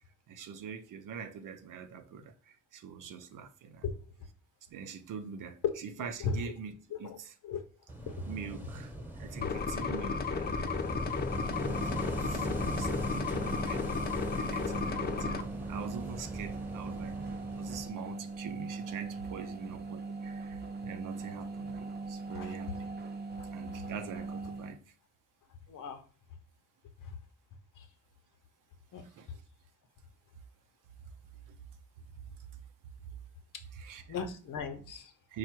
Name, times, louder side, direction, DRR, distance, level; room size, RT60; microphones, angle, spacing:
voice 1, 0.3-3.8 4.7-6.7 7.0-7.3 8.2-10.9 11.6-13.8 14.2-17.2 17.6-22.9 23.5-24.9 29.0-29.4 31.5-31.6 33.7-34.2 35.3-35.4, right 6 dB, 85° right, 0.6 m, -44 dB
Wind / Waves surf, 7.9-17.9, right 1 dB, 5° right, 1.0 m, -40 dB
sound 1, 9.4-15.4, left 5 dB, 30° left, 0.5 m, -34 dB
sound 2, 11.2-24.8, right 3 dB, 35° right, 0.7 m, -40 dB
voice 2, 25.7-26.0 27.0-27.2 27.8-27.9 28.9-29.0 34.1-35.1, left 6 dB, 80° left, 0.8 m, -36 dB
4.7 x 2.4 x 4.5 m
cardioid pair, 75°, 31 cm